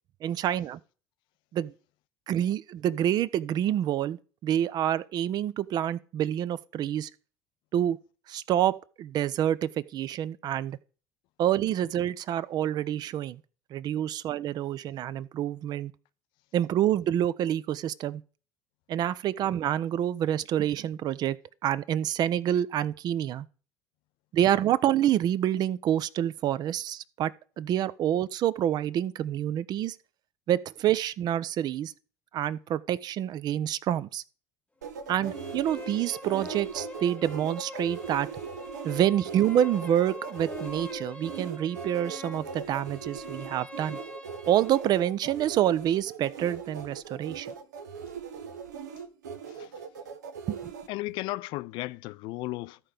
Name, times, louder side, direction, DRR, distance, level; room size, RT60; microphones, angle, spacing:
voice 1, 0.2-0.8 1.5-1.7 2.3-7.1 7.7-8.0 8.3-10.8 11.4-13.4 13.7-15.9 16.5-18.2 18.9-21.4 21.6-23.5 24.3-27.3 27.6-30.0 30.5-31.9 32.3-34.2 35.1-38.3 38.8-44.0 44.5-47.5 50.5-50.7, right 11 dB, 50° right, 0.5 m, -27 dB
sound 1, 34.8-50.9, right 6 dB, 90° right, 0.8 m, -40 dB
sound 2, 35.0-45.0, left 1 dB, 15° left, 0.8 m, -43 dB
voice 2, 50.9-52.8, left 19 dB, 60° left, 0.4 m, -35 dB
13.5 x 4.5 x 5.0 m
hypercardioid pair, 70°, 9 cm